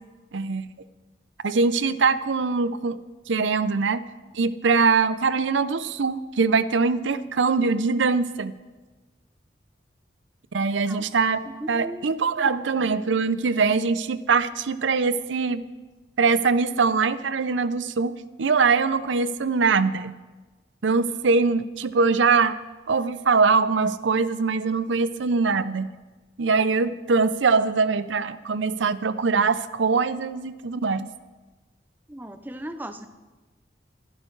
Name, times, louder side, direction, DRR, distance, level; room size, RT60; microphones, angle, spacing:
voice 1, 0.3-0.7 1.4-3.0 3.3-4.0 4.3-8.5 10.5-15.6 16.2-18.1 18.4-20.1 20.8-22.6 22.9-25.9 26.4-31.1, right 4 dB, 85° right, 14 dB, 0.6 m, -22 dB
voice 2, 11.5-12.1 12.4-12.5 12.8-12.9 32.1-33.1, right 1 dB, 10° right, 9 dB, 0.6 m, -37 dB
24.0 x 11.0 x 3.2 m, 1.3 s
head